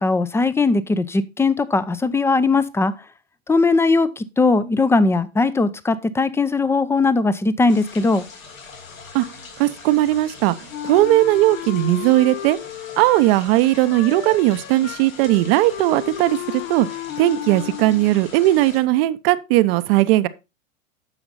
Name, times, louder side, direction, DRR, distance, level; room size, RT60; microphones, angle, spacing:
voice 1, 0.0-2.9 3.5-8.2, left 3 dB, 5° left, 0.6 m, -19 dB
sound 1, 7.7-18.8, left 4 dB, 80° left, 4.6 m, -42 dB
voice 2, 9.6-10.5 10.8-12.6 13.0-16.9 17.2-20.3, right 16 dB, 45° right, 0.8 m, -18 dB
Wind instrument woodwind instrument, 10.7-18.3, left 12 dB, 55° left, 0.9 m, -33 dB
9.9 x 6.9 x 4.1 m
hypercardioid pair, 95°, 40 cm